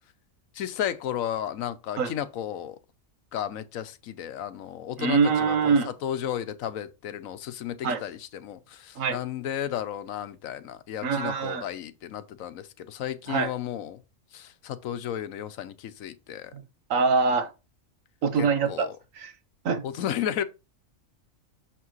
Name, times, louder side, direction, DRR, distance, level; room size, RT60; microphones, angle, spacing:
voice 1, 0.5-2.8 3.3-14.0 14.3-16.5 18.3-19.0 19.8-20.4, left 10 dB, 85° left, 1.1 m, -33 dB
voice 2, 5.0-5.9 7.8-8.0 9.0-9.2 11.0-11.6 13.3-13.5 16.9-17.5 18.2-18.9 19.2-19.3 19.6-19.8, right 5 dB, 80° right, 1.3 m, -24 dB
6.4 x 5.9 x 3.1 m
omnidirectional pair, 1.4 m